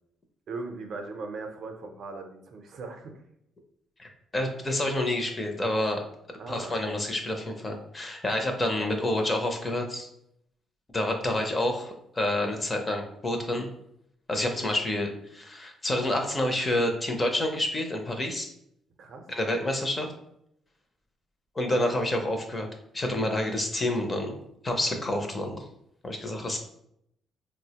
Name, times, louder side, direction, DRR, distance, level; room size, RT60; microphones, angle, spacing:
voice 1, 0.5-3.2 6.4-6.7 14.6-14.8 19.0-19.3, right 3 dB, 55° right, 4 dB, 0.5 m, -39 dB
voice 2, 4.0-6.0 6.5-10.1 10.9-13.7 14.3-18.5 19.3-20.1 21.6-22.7 22.9-24.4 24.6-25.6 26.0-26.6, left 1 dB, 20° left, 3 dB, 0.5 m, -28 dB
4.2 x 2.0 x 2.8 m, 0.75 s
cardioid pair, 120°, 0 cm